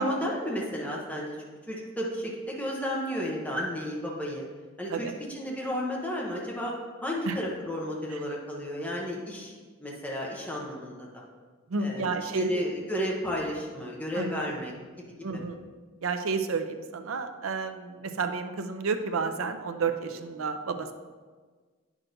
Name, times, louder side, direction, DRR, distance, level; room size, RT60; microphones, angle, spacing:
voice 1, 0.0-1.4 1.7-4.5 4.8-6.7 7.0-11.2 11.8-15.1 15.3-15.4, equal, 5° left, -3 dB, 0.9 m, -33 dB
voice 2, 11.7-12.6 14.1-14.5 15.2-15.6 16.0-20.9, right 4 dB, 85° right, 7 dB, 0.5 m, -31 dB
8.8 x 6.0 x 2.6 m, 1.4 s
head